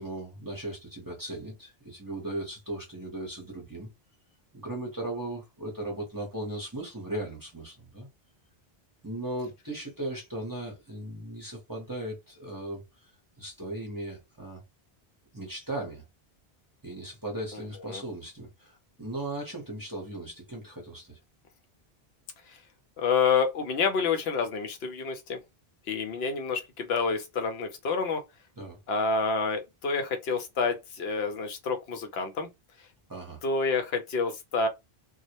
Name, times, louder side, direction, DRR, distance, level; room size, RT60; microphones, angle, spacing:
voice 1, 0.0-3.9 4.5-8.1 9.0-13.1 13.4-14.6 15.3-16.0 16.8-21.2 28.6-28.8 33.1-33.4, right 1 dB, 25° right, 0.7 m, -37 dB
voice 2, 23.0-25.4 25.9-28.2 28.9-32.5 33.4-34.7, left 4 dB, 80° left, 0.8 m, -28 dB
2.2 x 2.0 x 2.8 m
omnidirectional pair, 1.0 m